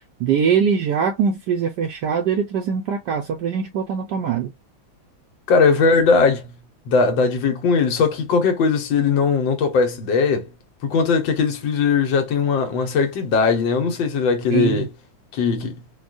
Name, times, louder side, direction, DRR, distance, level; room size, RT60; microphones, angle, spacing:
voice 1, 0.2-4.5 14.5-14.9, right 7 dB, 70° right, 1.1 m, -22 dB
voice 2, 5.5-6.5 6.9-10.5 10.8-14.9 15.3-15.8, left 5 dB, 70° left, 1.6 m, -19 dB
4.4 x 2.3 x 2.4 m
omnidirectional pair, 2.2 m